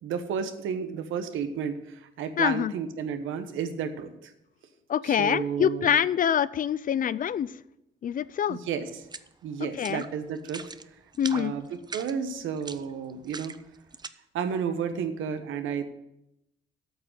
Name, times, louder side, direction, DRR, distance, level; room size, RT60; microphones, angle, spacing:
voice 1, 0.0-4.3 5.0-6.0 8.5-9.1 9.4-10.6 11.3-11.7 11.9-13.5 14.3-15.9, right 7 dB, 80° right, 9 dB, 1.1 m, -32 dB
voice 2, 2.4-2.7 4.9-7.5 8.0-8.6 9.8-10.0 11.2-11.5, left 9 dB, 45° left, 18 dB, 0.4 m, -25 dB
sound 1, 9.0-9.3 9.7-10.1 10.4-10.8 11.1-11.5 11.8-14.1, right 4 dB, 20° right, 0.5 m, -40 dB
8.7 x 6.2 x 7.9 m, 0.85 s
cardioid pair, 90°, 20 cm